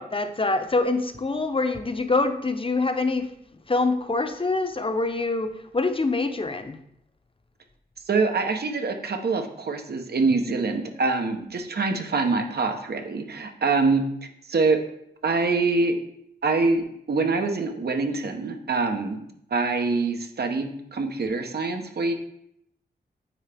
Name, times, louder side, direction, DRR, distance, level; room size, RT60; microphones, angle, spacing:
voice 1, 0.0-3.3 3.7-6.8, left 3 dB, 30° left, 8 dB, 0.8 m, -25 dB
voice 2, 8.1-14.0 14.5-14.8 15.2-16.0 16.4-19.2 19.5-22.1, right 3 dB, 70° right, 5 dB, 1.0 m, -25 dB
9.0 x 4.3 x 3.5 m, 0.74 s
cardioid pair, 60°, 17 cm